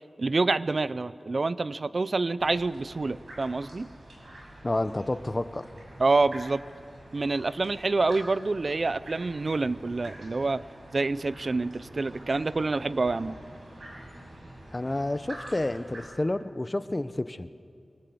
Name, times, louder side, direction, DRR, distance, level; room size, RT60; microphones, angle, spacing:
voice 1, 0.2-3.9 6.0-6.6 7.1-10.6 10.9-13.4, right 3 dB, 55° right, 16 dB, 0.6 m, -27 dB
sound 1, 2.4-16.1, right 1 dB, 75° right, 6.1 m, -47 dB
voice 2, 4.6-5.7 14.7-17.5, left 2 dB, 30° left, 12 dB, 0.9 m, -29 dB
24.0 x 20.0 x 7.9 m, 2.3 s
wide cardioid pair, 60°, 0 cm